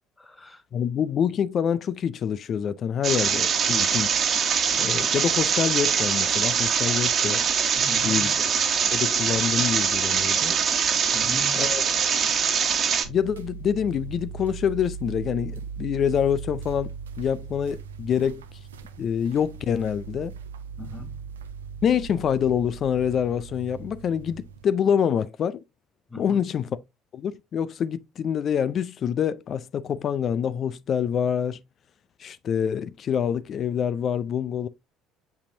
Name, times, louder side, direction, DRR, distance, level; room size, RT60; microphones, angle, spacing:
voice 1, 0.2-0.6 7.8-8.3 11.1-11.6 20.8-21.1 26.1-26.5, left 2 dB, 20° left, 2.5 m, -38 dB
voice 2, 0.7-4.2 4.7-7.4 8.0-8.3 8.9-10.5 11.5-11.8 13.1-18.4 19.0-20.3 21.8-25.6 26.2-26.8 27.1-31.6 32.2-34.7, left 8 dB, 50° left, 0.5 m, -26 dB
sound 1, 3.0-13.0, right 7 dB, 50° right, 1.4 m, -23 dB
sound 2, 13.0-24.6, right 6 dB, 90° right, 0.6 m, -39 dB
6.8 x 5.6 x 2.7 m
hypercardioid pair, 60°, 0 cm